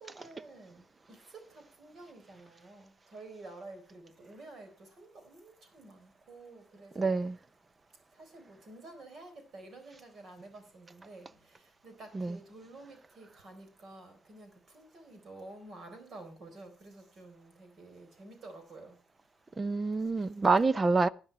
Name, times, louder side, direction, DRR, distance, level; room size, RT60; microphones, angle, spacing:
voice 1, 0.0-7.3 8.1-19.0 20.1-20.3, right 2 dB, 40° right, 3.9 m, -51 dB
voice 2, 7.0-7.4 12.1-12.4 19.6-21.1, right 3 dB, 15° right, 0.5 m, -27 dB
11.0 x 10.5 x 5.5 m
cardioid pair, 160°, 0 cm